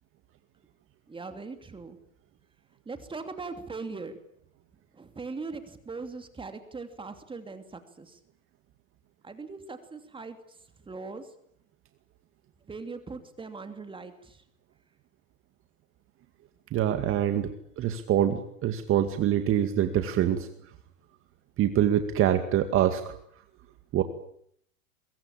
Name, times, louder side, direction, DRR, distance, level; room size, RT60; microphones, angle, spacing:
voice 1, 1.1-2.0 2.9-4.1 5.0-8.2 9.2-10.4 10.9-11.2 12.7-14.4, right 4 dB, 10° right, 8 dB, 2.8 m, -40 dB
voice 2, 16.7-17.5 17.8-20.5 21.6-23.1 23.9-24.0, right 11 dB, 30° right, 8 dB, 2.1 m, -25 dB
24.0 x 22.0 x 8.9 m, 0.68 s
hypercardioid pair, 115°, 41 cm